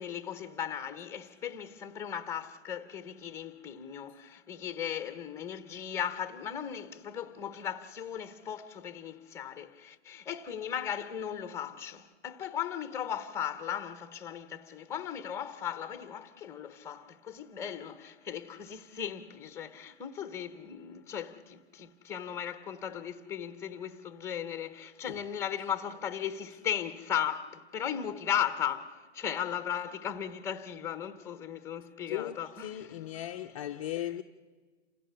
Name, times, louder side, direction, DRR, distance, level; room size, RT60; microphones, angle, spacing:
voice 1, 0.0-33.2 33.5-33.7, left 9 dB, 10° left, 0.9 m, -37 dB
voice 2, 32.1-34.2, left 12 dB, 30° left, 0.6 m, -37 dB
28.0 x 16.5 x 6.8 m
hypercardioid pair, 145°, 35 cm